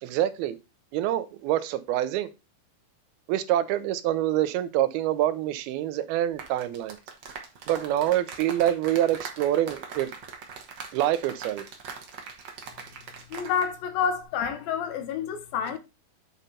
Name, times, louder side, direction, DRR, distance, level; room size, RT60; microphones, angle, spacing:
voice 1, 0.0-0.6 0.9-2.3 3.3-7.0 7.7-10.1 10.9-11.7, right 12 dB, 90° right, 2.7 m, -26 dB
sound 1, 6.3-13.7 14.0-14.2, right 5 dB, 60° right, 1.2 m, -41 dB
voice 2, 13.3-15.8, left 7 dB, 75° left, 2.9 m, -28 dB
8.7 x 5.3 x 4.2 m
omnidirectional pair, 4.3 m